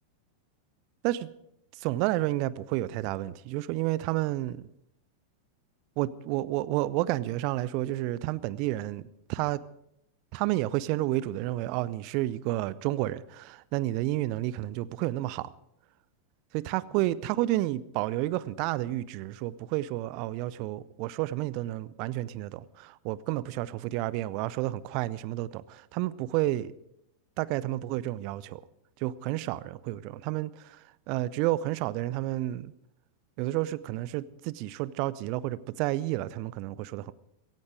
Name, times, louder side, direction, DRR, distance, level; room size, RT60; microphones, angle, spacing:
voice 1, 1.8-4.7 6.0-9.0 9.3-9.6 10.3-15.5 16.5-26.7 27.4-28.6 29.0-32.7 33.4-37.1, right 16 dB, 45° right, 0.6 m, -30 dB
17.0 x 16.0 x 4.9 m
figure-of-eight pair, 90°, 0 cm